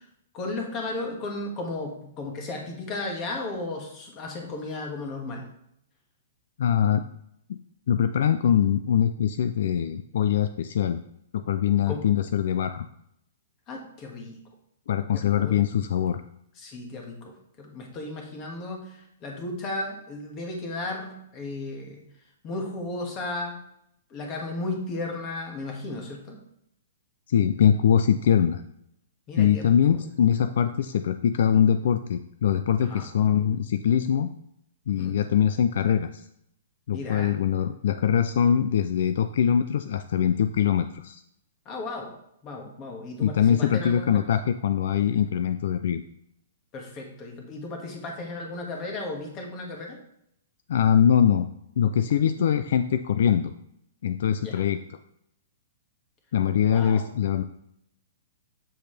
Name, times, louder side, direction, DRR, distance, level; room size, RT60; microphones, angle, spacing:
voice 1, 0.3-5.4 11.9-12.0 13.7-14.4 15.1-15.6 16.6-22.0 22.4-23.6 24.1-26.4 29.3-30.0 32.9-33.1 35.0-35.1 36.9-37.4 41.7-42.1 42.4-44.3 46.7-50.0 54.4-54.6 56.7-57.0, left 2 dB, 25° left, 1 dB, 1.8 m, -35 dB
voice 2, 6.6-7.0 7.9-11.0 11.3-12.9 14.9-16.2 27.3-28.6 29.4-34.3 34.9-36.2 36.9-41.2 43.2-46.0 50.7-51.5 51.8-53.5 54.0-54.8 56.3-57.4, left 8 dB, 65° left, 10 dB, 0.4 m, -23 dB
7.8 x 6.7 x 3.4 m, 0.76 s
hypercardioid pair, 160°, 0 cm